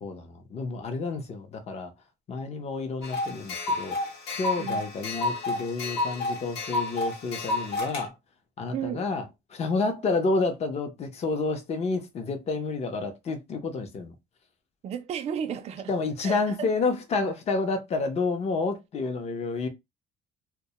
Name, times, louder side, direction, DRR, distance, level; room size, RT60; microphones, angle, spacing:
voice 1, 0.0-1.9 2.3-3.9 4.4-8.1 8.6-9.2 9.5-14.1 15.9-19.7, left 3 dB, 40° left, 0.6 m, -29 dB
sound 1, 3.0-8.0, left 2 dB, 85° left, 0.9 m, -30 dB
voice 2, 8.7-9.1 14.8-15.9 16.2-16.7, right 8 dB, 40° right, 0.4 m, -33 dB
2.2 x 2.1 x 2.9 m
cardioid pair, 110°, 17 cm